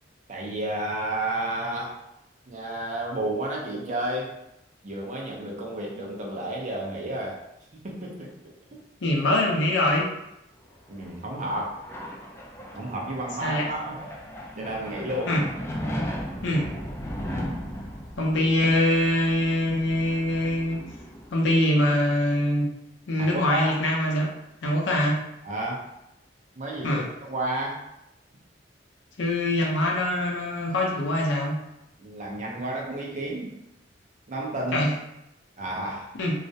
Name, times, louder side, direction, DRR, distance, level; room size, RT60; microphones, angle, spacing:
voice 1, 0.3-2.0 2.5-4.3 4.8-7.4 7.7-8.3 8.7-8.8 10.9-11.8 12.7-14.0 14.6-15.3 23.2-23.7 25.4-25.9 26.6-27.9 32.0-33.6 34.3-34.9 35.6-36.1, right 1 dB, 40° right, -2 dB, 0.5 m, -31 dB
voice 2, 9.0-10.1 13.4-13.7 15.3-15.4 16.4-16.7 18.2-20.8 21.3-22.7 23.1-24.3 24.6-25.2 26.8-27.0 29.2-31.6 34.7-34.9 36.2-36.3, left 1 dB, 70° left, -1 dB, 0.5 m, -23 dB
sound 1, 10.7-22.0, equal, 15° left, 0.3 m, -37 dB
2.3 x 2.1 x 2.6 m, 0.86 s
head